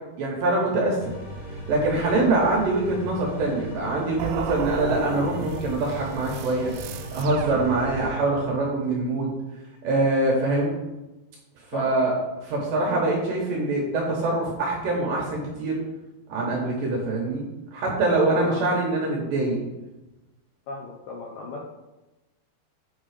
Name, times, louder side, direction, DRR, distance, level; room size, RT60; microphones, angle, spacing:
voice 1, 0.2-1.0 1.5-6.7 7.1-9.3 9.8-10.7 11.7-12.1 12.4-15.8 16.3-17.4 17.7-19.6, right 2 dB, 70° right, -1 dB, 2.2 m, -24 dB
sound 1, 1.0-8.1, equal, 40° left, 2.2 m, -38 dB
sound 2, 4.2-8.3, right 8 dB, 90° right, 2.2 m, -34 dB
voice 2, 18.2-18.7 20.7-21.6, left 2 dB, 80° left, -2 dB, 2.0 m, -35 dB
8.4 x 3.7 x 4.9 m, 1.1 s
omnidirectional pair, 5.0 m